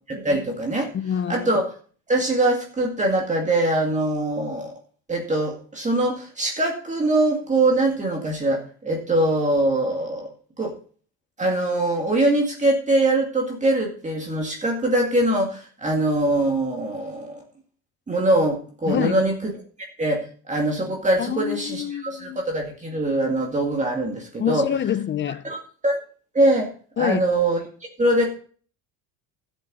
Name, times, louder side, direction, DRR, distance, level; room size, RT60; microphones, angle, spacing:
voice 1, 0.1-0.9 1.3-1.7 2.1-4.7 5.1-10.7 11.4-17.4 18.1-19.5 20.0-24.7 25.4-26.0 26.3-26.7 27.0-27.6 28.0-28.3, right 1 dB, 20° right, 2.2 m, -23 dB
voice 2, 0.9-1.5 18.9-19.2 21.2-22.4 24.4-25.4 27.0-27.2, left 9 dB, 30° left, 0.6 m, -26 dB
12.5 x 7.9 x 4.1 m
cardioid pair, 130°, 37 cm